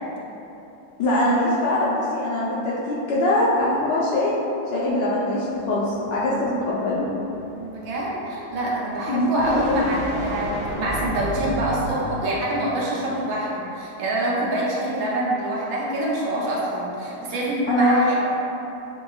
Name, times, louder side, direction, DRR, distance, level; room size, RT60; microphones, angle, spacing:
voice 1, 1.0-4.3 4.7-7.1 9.1-9.9 17.7-18.0, left 1 dB, 75° left, -7 dB, 1.0 m, -22 dB
sound 1, 5.5-12.5, equal, 45° right, 1.4 m, -34 dB
voice 2, 7.5-18.1, right 1 dB, 70° right, -5 dB, 1.3 m, -26 dB
6.3 x 2.8 x 2.3 m, 3.0 s
omnidirectional pair, 2.3 m